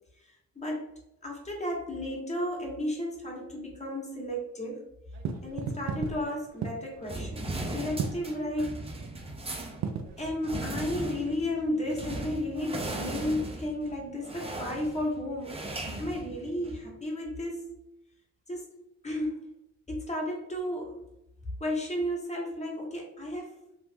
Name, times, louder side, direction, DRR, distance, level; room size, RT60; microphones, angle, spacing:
voice 1, 0.5-0.9 1.2-4.8 5.4-8.9 10.2-15.6 16.0-17.8 18.5-18.8 19.0-19.4 19.9-21.0 21.6-23.6, left 1 dB, 20° left, -1 dB, 1.1 m, -33 dB
sound 1, 5.1-11.7, right 6 dB, 65° right, 0.5 m, -37 dB
sound 2, 7.1-16.9, right 2 dB, 20° right, 0.6 m, -38 dB
3.0 x 2.5 x 3.5 m, 0.84 s
cardioid pair, 90°, 30 cm